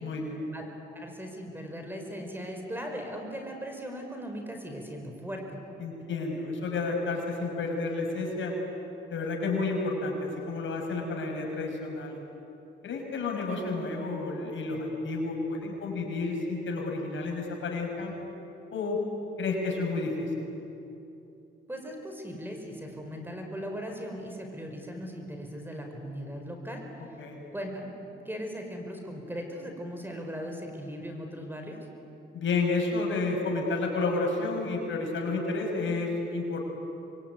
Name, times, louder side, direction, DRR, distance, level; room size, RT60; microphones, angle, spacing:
voice 1, 0.0-0.5 5.8-8.5 9.1-12.2 12.8-18.1 18.7-19.0 19.4-20.3 27.2-27.4 32.3-36.6, left 3 dB, 70° left, 1 dB, 6.2 m, -31 dB
voice 2, 0.5-5.6 21.7-26.8 27.5-27.9 28.3-31.9, equal, 10° right, 3 dB, 5.2 m, -38 dB
25.5 x 23.0 x 9.7 m, 2.9 s
cardioid pair, 85°, 21 cm